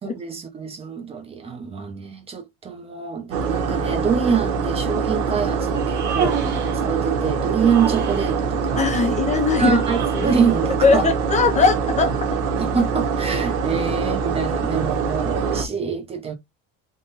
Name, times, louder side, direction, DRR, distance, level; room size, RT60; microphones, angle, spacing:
voice 1, 0.0-6.4 6.7-8.9 9.6-11.1 12.6-16.3, right 6 dB, 20° right, 0.6 m, -25 dB
sound 1, 3.3-15.7, right 5 dB, 75° right, 1.2 m, -24 dB
Human voice, 5.8-6.8 7.6-8.4 9.8-10.5, right 6 dB, 35° right, 1.3 m, -29 dB
voice 2, 8.8-9.8 10.1-10.3 10.8-12.1, left 5 dB, 25° left, 0.5 m, -19 dB
3.7 x 2.1 x 3.9 m
cardioid pair, 165°, 31 cm